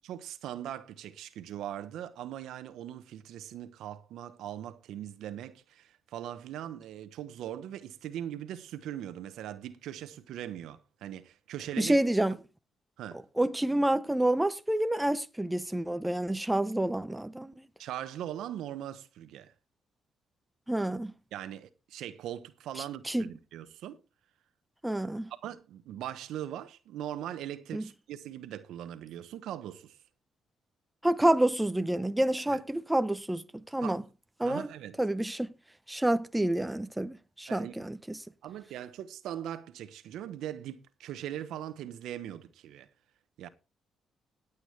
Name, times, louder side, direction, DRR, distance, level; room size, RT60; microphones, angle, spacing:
voice 1, 0.0-12.0 13.0-13.2 17.8-19.5 21.3-24.0 25.4-30.0 32.5-32.6 33.8-34.0 34.4-35.0 37.5-37.7 38.4-42.9 43.4-43.5, right 11 dB, 80° right, 1.0 m, -40 dB
voice 2, 11.8-12.4 13.4-17.5 20.7-21.1 23.1-23.2 24.8-25.3 27.7-27.9 31.0-33.4 33.7-34.0 34.4-34.7 35.0-35.5 35.9-38.2, right 1 dB, 10° right, 0.7 m, -28 dB
18.0 x 8.3 x 3.3 m
cardioid pair, 90°, 0 cm